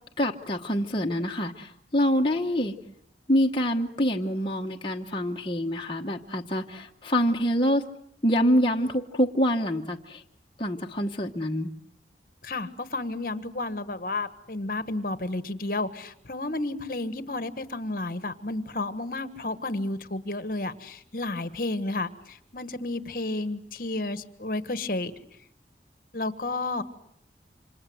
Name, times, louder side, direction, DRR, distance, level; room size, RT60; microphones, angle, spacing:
voice 1, 0.2-2.7 3.3-7.8 8.2-10.2 10.6-11.7, equal, 30° left, 1 dB, 1.2 m, -26 dB
voice 2, 12.4-25.1 26.1-26.8, left 2 dB, 50° left, 12 dB, 1.5 m, -32 dB
28.5 x 26.5 x 7.9 m, 0.71 s
head